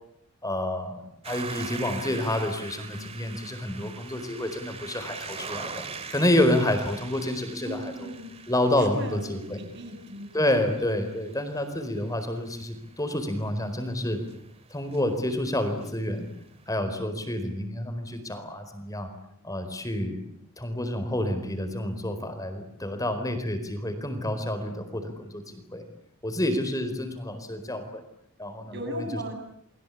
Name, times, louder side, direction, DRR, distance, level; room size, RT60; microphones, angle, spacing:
voice 1, 0.4-5.8 6.1-8.1 8.5-9.6 10.3-14.2 14.7-16.3 16.7-19.1 19.4-20.2 20.6-25.8 26.2-28.0 28.4-29.1, left 1 dB, 15° left, 8 dB, 4.5 m, -29 dB
sound 1, 1.2-16.7, right 5 dB, 25° right, 2.2 m, -43 dB
voice 2, 7.6-8.4 8.8-10.3 28.7-29.3, equal, 50° right, 5 dB, 7.8 m, -37 dB
29.5 x 23.0 x 8.5 m, 0.71 s
head